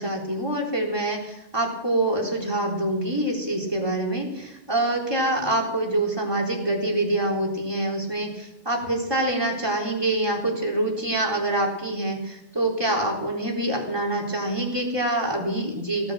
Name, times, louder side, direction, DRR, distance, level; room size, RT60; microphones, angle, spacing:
voice 1, 0.0-16.1, right 1 dB, 20° right, -2 dB, 3.8 m, -25 dB
18.0 x 10.5 x 7.6 m, 0.88 s
omnidirectional pair, 1.3 m